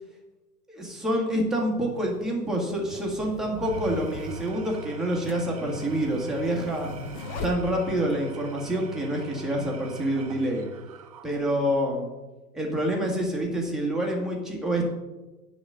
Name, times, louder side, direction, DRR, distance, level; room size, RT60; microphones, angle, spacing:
voice 1, 0.7-6.9 7.4-10.6 11.2-12.1 12.5-14.8, right 1 dB, ahead, -2 dB, 1.7 m, -27 dB
sound 1, 0.8-0.9 1.8-8.3, left 3 dB, 35° left, 1.1 m, -40 dB
Engine / Tools, 3.5-11.8, right 4 dB, 25° right, 0.4 m, -42 dB
10.5 x 4.1 x 6.9 m, 1.2 s
figure-of-eight pair, 110°, 48 cm